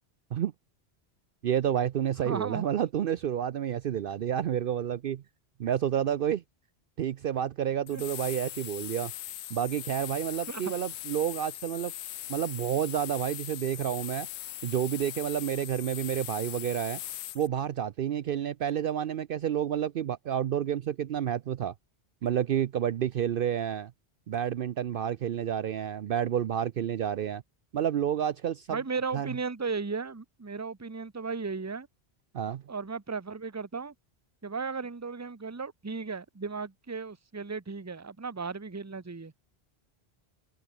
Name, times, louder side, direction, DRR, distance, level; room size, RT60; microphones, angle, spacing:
voice 1, 1.4-5.2 5.6-6.4 7.0-9.1 9.5-11.9 12.3-14.3 14.6-17.0 17.3-21.7 22.2-23.9 24.3-27.4 27.7-28.8 29.1-29.3 32.3-32.6, right 9 dB, 60° right, 0.7 m, -29 dB
voice 2, 2.2-2.7 7.9-8.0 10.5-10.6 28.7-31.9 32.7-33.9 34.4-39.3, right 4 dB, 15° right, 0.8 m, -35 dB
sound 1, 7.9-17.5, left 13 dB, 90° left, 0.9 m, -40 dB
omnidirectional pair, 1.1 m